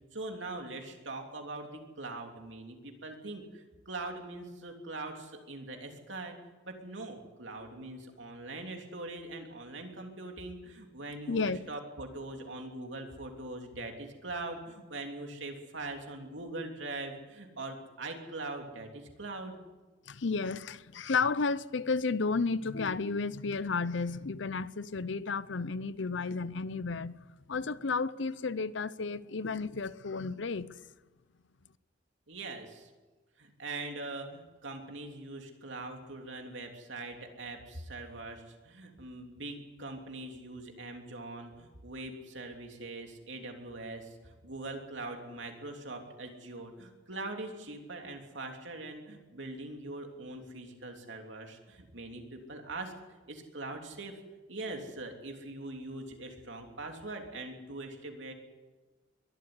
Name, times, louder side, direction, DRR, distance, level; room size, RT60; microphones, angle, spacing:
voice 1, 0.1-6.4 6.6-19.6 32.3-32.9 33.4-54.1 54.5-58.3, right 2 dB, 70° right, 3.2 m, -42 dB
voice 2, 11.3-11.6 20.1-27.2 27.5-30.8, left 4 dB, 65° left, 0.6 m, -32 dB
22.5 x 12.5 x 9.7 m
head